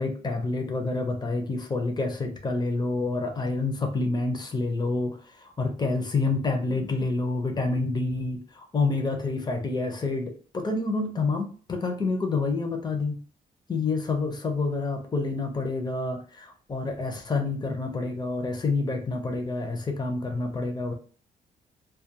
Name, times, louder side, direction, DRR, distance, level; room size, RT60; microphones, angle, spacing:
voice 1, 0.0-13.2 13.7-20.9, left 3 dB, 25° left, 4 dB, 0.6 m, -28 dB
2.3 x 2.2 x 2.8 m, 0.42 s
cardioid pair, 105°, 17 cm